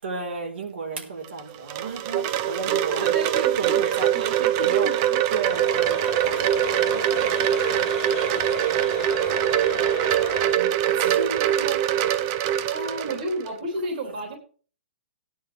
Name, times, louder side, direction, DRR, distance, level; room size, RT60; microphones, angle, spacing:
voice 1, 0.0-3.2 3.5-4.9 5.3-11.8, right 4 dB, 70° right, 1 dB, 4.1 m, -35 dB
Wind chime, 1.2-13.5, right 11 dB, 25° right, 0.6 m, -23 dB
voice 2, 2.7-5.4 12.7-14.4, right 2 dB, 45° right, 3 dB, 3.4 m, -32 dB
sound 1, 5.5-10.6, left 7 dB, 20° left, 3.0 m, -35 dB
17.0 x 10.5 x 3.3 m, 0.40 s
hypercardioid pair, 175°, 6 cm